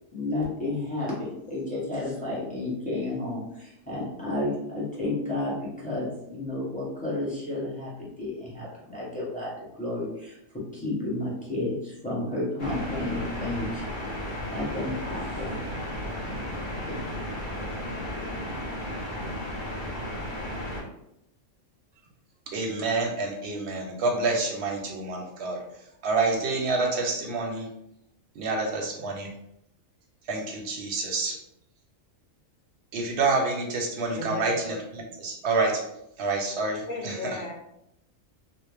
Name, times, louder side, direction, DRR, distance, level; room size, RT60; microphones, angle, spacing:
voice 1, 0.1-9.5 9.8-13.9 14.5-15.6 16.3-16.4 16.8-17.0, left 2 dB, 10° left, -6 dB, 0.7 m, -31 dB
sound 1, 12.6-20.8, left 1 dB, 45° left, 0.7 m, -34 dB
voice 2, 22.5-25.6 26.0-27.7 28.4-29.3 30.3-31.4 32.9-35.8 36.2-37.4, right 3 dB, 65° right, 1 dB, 0.8 m, -28 dB
voice 3, 34.2-34.6 36.8-37.5, left 2 dB, 70° left, 0 dB, 1.0 m, -35 dB
2.5 x 2.0 x 3.2 m, 0.80 s
omnidirectional pair, 1.4 m